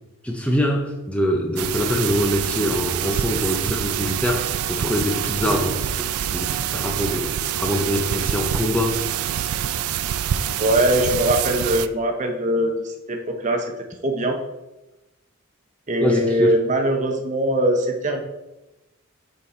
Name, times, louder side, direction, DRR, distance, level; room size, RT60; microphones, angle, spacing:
voice 1, 0.2-5.9 6.3-7.3 7.6-9.0 16.0-16.6, equal, 5° left, 1 dB, 0.5 m, -23 dB
sound 1, 1.6-11.9, right 10 dB, 85° right, 0.3 m, -26 dB
voice 2, 10.6-13.6 14.0-14.4 15.9-18.2, right 1 dB, 35° right, 3 dB, 0.7 m, -21 dB
6.3 x 4.2 x 4.3 m, 1.0 s
head